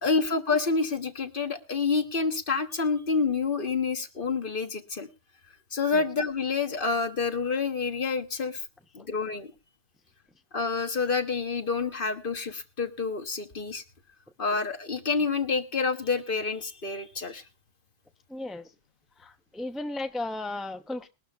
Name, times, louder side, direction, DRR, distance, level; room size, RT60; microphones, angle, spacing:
voice 1, 0.0-5.1 5.7-8.6 8.9-9.5 10.5-13.8 14.4-17.4, left 4 dB, 50° left, 7 dB, 1.5 m, -28 dB
voice 2, 18.3-18.7 19.2-21.1, left 2 dB, ahead, 7 dB, 0.7 m, -35 dB
21.0 x 12.5 x 2.4 m, 0.28 s
omnidirectional pair, 1.2 m